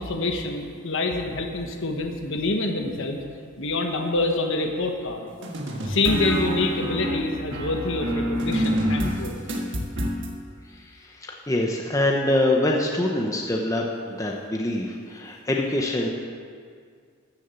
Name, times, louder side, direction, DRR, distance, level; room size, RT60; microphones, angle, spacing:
voice 1, 0.0-3.2 3.6-5.3 5.8-9.3, left 2 dB, 60° left, 3 dB, 1.2 m, -26 dB
sound 1, 5.4-10.3, equal, 60° right, 1.5 m, -27 dB
voice 2, 10.7-16.1, left 1 dB, 15° left, 0 dB, 0.8 m, -25 dB
13.5 x 7.2 x 7.0 m, 2.1 s
head